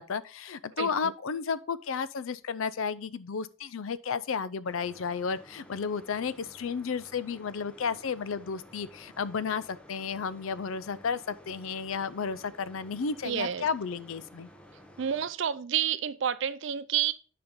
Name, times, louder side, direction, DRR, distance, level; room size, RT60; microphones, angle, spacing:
voice 1, 0.0-14.5, left 5 dB, 75° left, 0.5 m, -33 dB
voice 2, 0.8-1.1 13.2-13.7 15.0-17.1, right 9 dB, 60° right, 0.4 m, -29 dB
sound 1, 4.6-15.3, equal, 5° left, 0.8 m, -53 dB
9.7 x 5.2 x 3.7 m
head